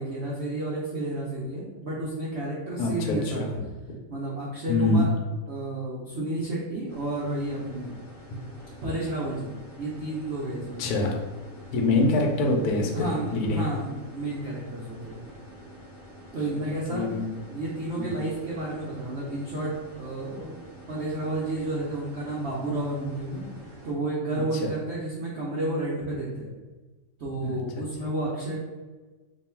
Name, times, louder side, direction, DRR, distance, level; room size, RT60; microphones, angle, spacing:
voice 1, 0.0-3.5 4.1-5.2 5.5-8.0 8.8-9.5 9.8-10.9 12.9-15.3 16.3-17.1 17.5-20.6 20.8-23.4 23.8-26.5 27.2-28.6, right 2 dB, 75° right, -5 dB, 0.6 m, -31 dB
voice 2, 2.8-3.7 4.7-5.0 10.8-11.2 11.7-13.7 16.5-16.6 16.9-17.3 18.0-18.2 24.5-24.7 27.4-27.8, left 2 dB, 65° left, 1 dB, 1.0 m, -25 dB
sound 1, 6.9-23.9, equal, 25° left, 0.7 m, -47 dB
3.0 x 2.3 x 4.3 m, 1.3 s
omnidirectional pair, 2.0 m